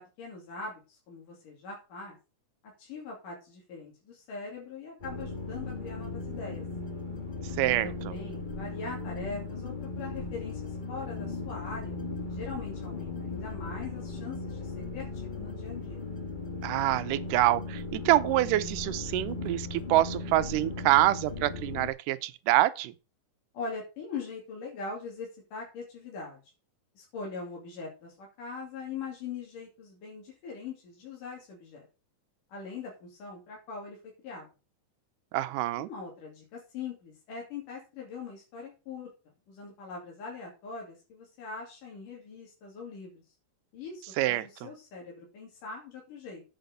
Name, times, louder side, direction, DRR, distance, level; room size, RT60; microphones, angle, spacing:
voice 1, 0.0-2.2 2.6-6.6 7.8-12.0 12.3-16.1 23.5-26.4 27.0-31.9 32.5-34.0 34.2-34.5 35.8-39.1 39.5-43.2 43.7-46.4, left 4 dB, 85° left, 4.3 m, -42 dB
sound 1, 5.0-21.9, left 3 dB, 30° left, 0.8 m, -37 dB
voice 2, 7.6-8.1 16.6-22.9 35.3-35.9 44.2-44.5, right 15 dB, 90° right, 2.3 m, -26 dB
8.6 x 5.9 x 6.5 m
omnidirectional pair, 3.6 m